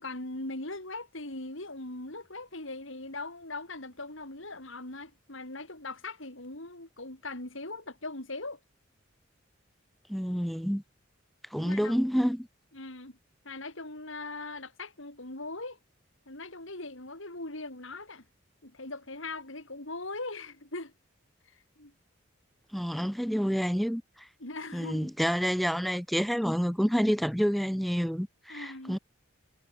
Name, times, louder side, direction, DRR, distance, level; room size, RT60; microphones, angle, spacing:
voice 1, 0.0-8.6 11.6-11.9 12.7-13.2 13.4-15.8 16.3-18.2 18.6-20.9 21.4-21.9 24.4-25.1 28.5-29.0, left 2 dB, 70° left, 4.7 m, -40 dB
voice 2, 10.1-10.8 11.5-12.5 22.7-24.3 24.7-29.0, equal, ahead, 1.3 m, -28 dB
head